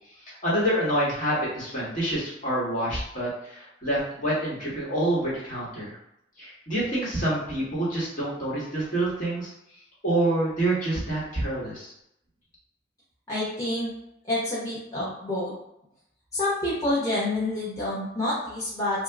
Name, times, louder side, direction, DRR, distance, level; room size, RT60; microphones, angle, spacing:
voice 1, 0.4-6.0 6.4-9.5 10.0-11.9, right 1 dB, 45° left, -7 dB, 1.2 m, -27 dB
voice 2, 13.3-13.9 14.3-15.5 16.3-19.0, left 1 dB, 15° left, -10 dB, 1.0 m, -28 dB
2.8 x 2.3 x 3.4 m, 0.79 s
head